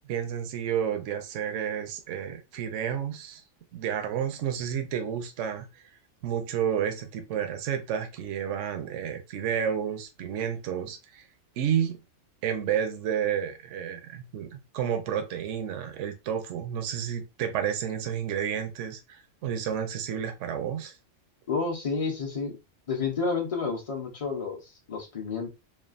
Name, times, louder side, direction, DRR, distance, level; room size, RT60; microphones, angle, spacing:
voice 1, 0.0-3.4 3.7-5.7 6.2-11.2 11.6-12.0 12.4-21.0, right 8 dB, 70° right, 0.9 m, -31 dB
voice 2, 21.5-22.6 22.9-25.5, left 4 dB, 35° left, 0.6 m, -30 dB
3.2 x 2.3 x 2.4 m
omnidirectional pair, 1.4 m